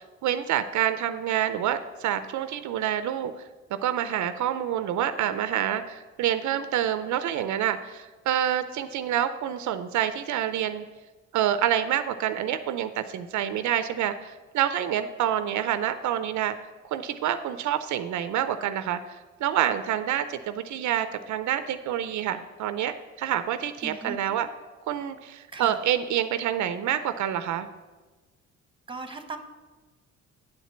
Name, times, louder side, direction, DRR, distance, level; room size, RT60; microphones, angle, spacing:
voice 1, 0.0-3.3 3.7-10.8 11.3-16.6 16.9-24.5 24.9-27.7, right 10 dB, 75° right, 11 dB, 0.5 m, -27 dB
voice 2, 23.8-24.2 25.5-25.8 28.9-29.4, right 3 dB, 15° right, 7 dB, 0.9 m, -38 dB
8.9 x 4.3 x 7.1 m, 1.3 s
cardioid pair, 90°, 30 cm